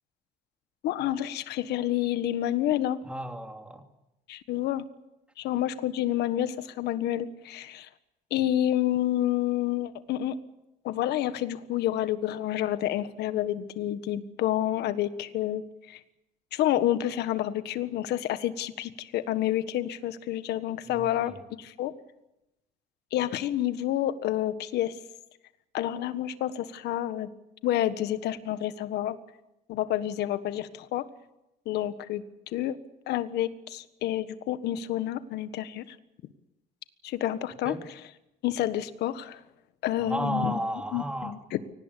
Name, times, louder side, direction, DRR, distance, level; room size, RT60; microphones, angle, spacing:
voice 1, 0.8-3.0 4.3-4.8 5.4-7.9 8.3-10.3 10.8-16.0 16.5-21.3 21.6-21.9 23.1-24.9 25.7-27.3 27.6-29.2 29.7-31.1 31.6-32.8 33.1-35.9 37.0-37.7 38.4-39.4 39.8-40.6 40.9-41.6, left 12 dB, 80° left, 12 dB, 1.5 m, -29 dB
voice 2, 3.0-3.8 20.9-21.4 37.6-37.8 40.0-41.4, right 1 dB, 5° right, 5 dB, 2.9 m, -33 dB
23.5 x 18.5 x 8.4 m, 0.92 s
cardioid pair, 110°, 17 cm